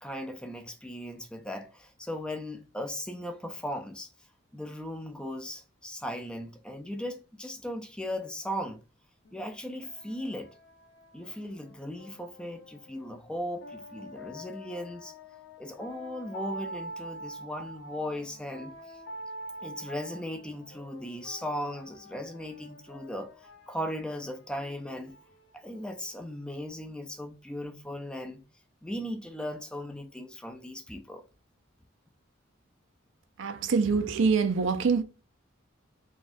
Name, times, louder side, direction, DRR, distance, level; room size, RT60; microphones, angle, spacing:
voice 1, 0.0-4.1 4.5-8.8 9.3-10.5 11.1-15.1 15.6-19.0 19.6-23.3 23.7-25.1 25.5-28.4 28.8-31.2, equal, 5° left, 0.4 m, -37 dB
sound 1, 9.2-26.7, right 1 dB, 60° left, 0.8 m, -46 dB
voice 2, 33.4-35.0, right 5 dB, 65° right, 0.4 m, -25 dB
4.0 x 2.3 x 2.5 m
head